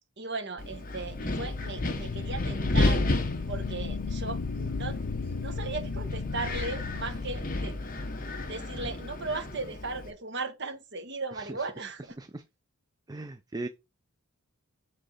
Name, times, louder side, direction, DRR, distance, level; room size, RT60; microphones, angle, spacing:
voice 1, 0.2-3.1 3.5-7.8 8.4-12.2, right 3 dB, 50° right, 1.4 m, -37 dB
Wind, 0.6-10.1, left 2 dB, 40° left, 1.0 m, -32 dB
sound 1, 1.0-8.0, left 4 dB, 85° left, 0.6 m, -36 dB
voice 2, 11.3-11.7 12.2-12.4 13.1-13.7, right 2 dB, 15° right, 0.4 m, -38 dB
7.8 x 4.0 x 4.9 m
head